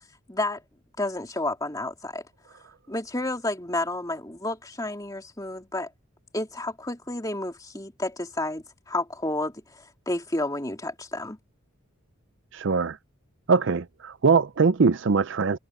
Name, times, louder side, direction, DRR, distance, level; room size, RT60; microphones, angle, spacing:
voice 1, 0.3-0.6 1.0-2.2 2.9-5.9 6.3-11.4, left 2 dB, 15° left, 2.8 m, -31 dB
voice 2, 12.5-13.0 13.5-15.6, right 5 dB, 55° right, 0.5 m, -22 dB
head